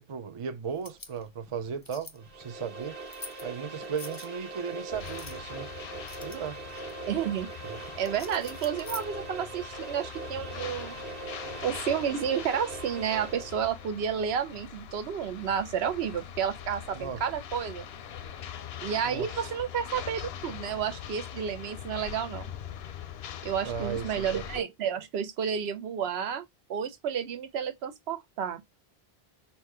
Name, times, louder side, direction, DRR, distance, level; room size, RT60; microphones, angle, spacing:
voice 1, 0.0-3.0 3.4-5.7 6.2-6.6 7.6-7.8 16.9-17.2 19.0-19.5 23.6-24.4, right 7 dB, 40° right, 0.5 m, -36 dB
sound 1, 0.7-9.6, left 3 dB, 25° left, 0.5 m, -49 dB
sound 2, 2.2-13.8, right 3 dB, 65° right, 1.3 m, -41 dB
sound 3, 4.9-24.6, left 9 dB, 80° left, 0.8 m, -42 dB
voice 2, 7.1-7.5 8.0-11.0 11.6-17.9 18.8-22.5 23.4-26.4 26.7-28.6, right 8 dB, 80° right, 0.9 m, -31 dB
4.1 x 2.3 x 4.6 m
omnidirectional pair, 1.0 m